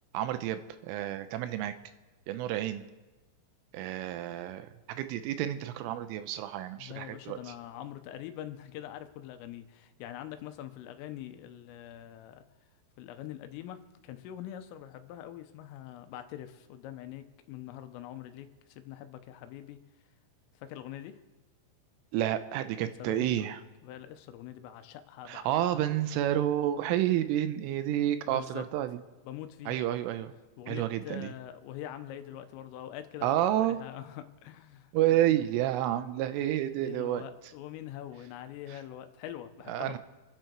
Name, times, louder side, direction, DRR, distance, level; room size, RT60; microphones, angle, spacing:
voice 1, 0.1-1.7 2.3-2.9 3.7-7.4 22.1-23.6 25.3-29.0 29.7-30.3 30.7-31.3 33.2-33.8 34.9-37.2 38.7-38.8 39.7-40.0, right 12 dB, 80° right, 11 dB, 3.1 m, -30 dB
voice 2, 6.8-12.4 13.0-13.8 14.0-19.8 20.6-21.2 22.8-25.6 28.3-28.6 29.3-29.9 30.6-33.3 33.6-35.4 36.8-40.0, left 11 dB, 90° left, 9 dB, 3.4 m, -44 dB
28.5 x 10.5 x 4.6 m, 1.1 s
omnidirectional pair, 5.9 m